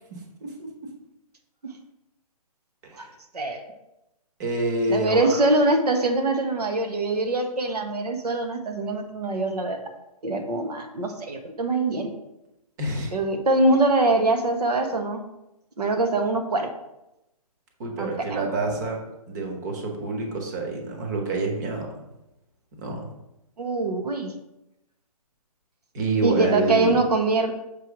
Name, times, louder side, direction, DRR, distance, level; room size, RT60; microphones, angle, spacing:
voice 1, 0.1-0.7 2.9-3.1 4.4-5.4 12.8-13.1 17.8-19.0 19.3-21.9 22.8-23.1 25.9-27.0, right 2 dB, 30° right, 2 dB, 1.3 m, -27 dB
voice 2, 4.9-9.8 10.2-12.1 13.1-15.2 15.8-16.7 18.0-18.4 23.6-24.3 26.2-27.5, right 2 dB, 90° right, 5 dB, 1.2 m, -23 dB
6.7 x 3.2 x 5.9 m, 0.90 s
hypercardioid pair, 160°, 20 cm